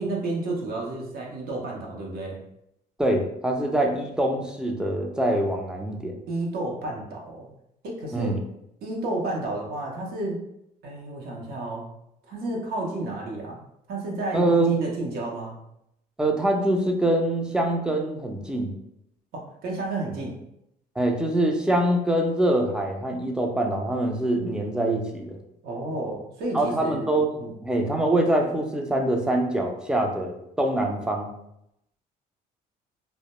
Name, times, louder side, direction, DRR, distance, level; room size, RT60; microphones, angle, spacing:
voice 1, 0.0-2.4 6.3-7.5 7.8-8.4 8.8-10.4 10.8-11.9 12.3-13.6 13.9-15.6 19.3-20.3 25.6-27.5, right 2 dB, 65° right, -2 dB, 0.7 m, -31 dB
voice 2, 3.0-6.1 8.1-8.4 14.3-14.8 16.2-18.7 21.0-25.4 26.5-27.3 27.6-31.3, right 1 dB, 5° right, 2 dB, 0.4 m, -24 dB
2.2 x 2.0 x 2.9 m, 0.79 s
cardioid pair, 110°, 17 cm